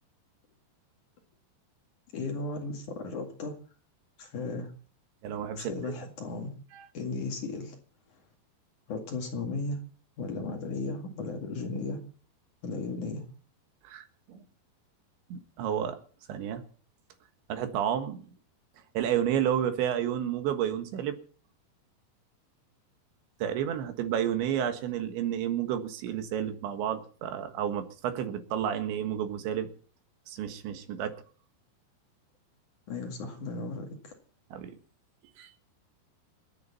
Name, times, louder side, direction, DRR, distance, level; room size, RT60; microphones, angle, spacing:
voice 1, 2.1-3.6 4.2-4.7 5.6-6.5 6.9-7.8 8.9-9.8 10.2-12.0 12.6-13.2 32.9-34.1, left 3 dB, 50° left, 2 dB, 3.1 m, -35 dB
voice 2, 5.2-5.9 6.7-6.9 13.9-14.4 15.3-16.0 16.3-16.6 17.5-18.2 19.0-21.2 23.4-29.7 30.3-31.1 34.5-34.8 35.4-35.5, right 10 dB, 85° right, 7 dB, 3.9 m, -31 dB
28.0 x 9.6 x 4.2 m, 0.42 s
omnidirectional pair, 5.1 m